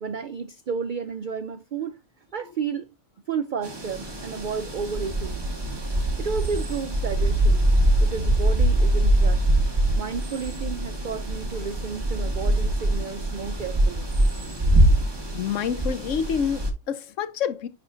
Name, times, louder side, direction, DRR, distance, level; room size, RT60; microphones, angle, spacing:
voice 1, 0.0-2.0 2.3-2.9 3.3-5.4 6.2-7.6 8.0-9.5 10.0-14.1, right 5 dB, 70° right, 0.4 m, -32 dB
sound 1, 3.6-16.7, right 1 dB, 20° right, 1.1 m, -23 dB
voice 2, 15.3-17.7, left 7 dB, 70° left, 1.0 m, -27 dB
10.5 x 4.1 x 2.5 m
omnidirectional pair, 1.4 m